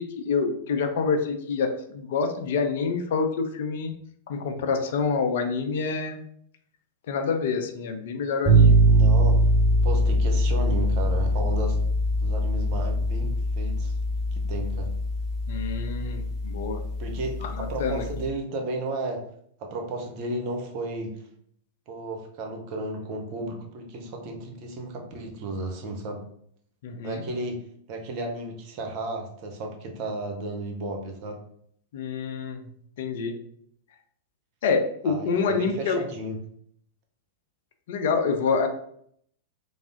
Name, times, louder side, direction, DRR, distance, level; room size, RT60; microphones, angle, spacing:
voice 1, 0.0-3.9 4.3-6.2 7.1-8.8 15.5-16.8 17.4-18.0 26.8-27.2 31.9-32.6 33.0-33.3 34.6-36.0 37.9-38.7, left 5 dB, 60° left, 5 dB, 0.5 m, -27 dB
sound 1, 8.4-18.3, right 1 dB, 10° left, 1.4 m, -23 dB
voice 2, 8.9-9.4 9.8-11.8 12.2-13.9 14.3-14.9 17.0-19.2 19.6-21.2 21.9-26.3 27.0-27.6 27.9-31.4 35.0-36.4, right 2 dB, 45° right, 3 dB, 0.8 m, -33 dB
3.5 x 2.0 x 3.7 m, 0.66 s
figure-of-eight pair, 100°, 0 cm